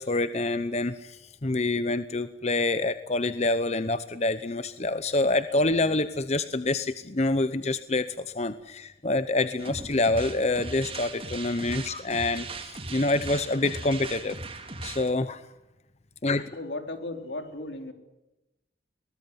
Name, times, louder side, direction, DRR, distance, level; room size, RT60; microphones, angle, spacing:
voice 1, 0.0-14.4 14.8-15.4 16.2-16.5, left 2 dB, 35° left, 12 dB, 0.9 m, -27 dB
sound 1, 9.6-15.1, right 3 dB, 30° right, 2.7 m, -39 dB
voice 2, 16.6-17.9, left 2 dB, 80° left, 6 dB, 3.6 m, -36 dB
23.0 x 19.5 x 9.6 m, 0.97 s
head